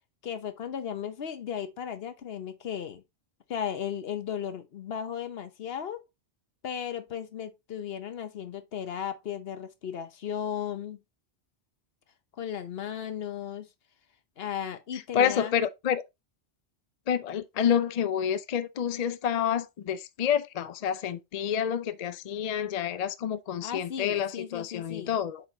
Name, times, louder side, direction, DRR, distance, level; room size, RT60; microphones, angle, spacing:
voice 1, 0.2-3.0 3.5-6.0 6.6-11.0 12.4-13.7 14.4-15.5 23.6-25.2, left 8 dB, 70° left, 1.0 m, -35 dB
voice 2, 15.1-16.0 17.1-25.4, left 8 dB, 50° left, 0.5 m, -28 dB
7.6 x 4.6 x 2.8 m
omnidirectional pair, 1.1 m